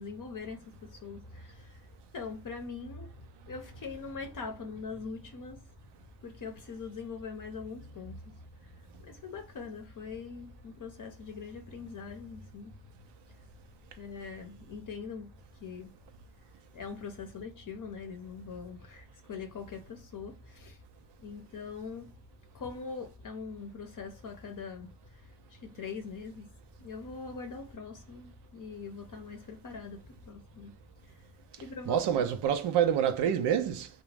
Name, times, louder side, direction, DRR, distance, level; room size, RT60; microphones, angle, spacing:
voice 1, 0.0-1.9 2.1-3.2 3.4-5.7 6.2-13.1 14.0-15.9 16.7-20.8 21.2-22.1 22.5-26.5 26.8-30.8 31.1-31.2 31.6-32.2, left 5 dB, 50° left, 0.7 m, -42 dB
voice 2, 31.9-33.9, right 9 dB, 85° right, 0.5 m, -27 dB
2.4 x 2.2 x 3.2 m
cardioid pair, 70°, 40 cm